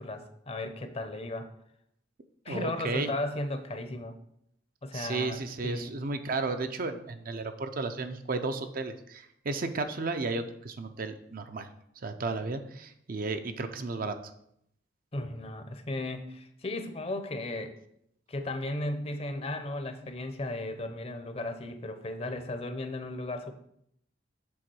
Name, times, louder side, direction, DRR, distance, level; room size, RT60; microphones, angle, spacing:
voice 1, 0.0-1.5 2.4-4.1 4.8-5.4 5.6-5.9 15.1-17.7 18.3-23.5, left 2 dB, 30° left, 8 dB, 0.7 m, -35 dB
voice 2, 2.5-3.1 4.9-11.7 12.0-14.2, right 3 dB, 50° right, 8 dB, 0.6 m, -33 dB
7.8 x 3.6 x 6.1 m, 0.73 s
head